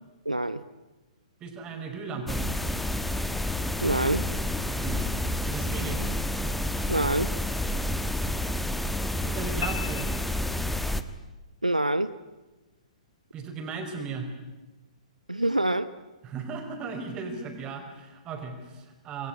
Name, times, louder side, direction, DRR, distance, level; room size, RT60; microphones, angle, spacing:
voice 1, 0.2-0.6 3.8-4.3 6.9-7.3 11.6-12.1 15.3-15.9, right 1 dB, 90° right, 14 dB, 0.9 m, -25 dB
voice 2, 1.4-2.4 4.7-5.1 5.4-6.0 9.2-10.1 13.3-14.3 16.2-19.3, right 5 dB, 20° right, 5 dB, 5.2 m, -36 dB
sound 1, 2.3-11.0, left 1 dB, 5° left, 1.2 m, -29 dB
sound 2, 9.6-11.1, left 8 dB, 55° left, 0.8 m, -38 dB
27.0 x 20.5 x 9.8 m, 1.1 s
figure-of-eight pair, 120°, 4 cm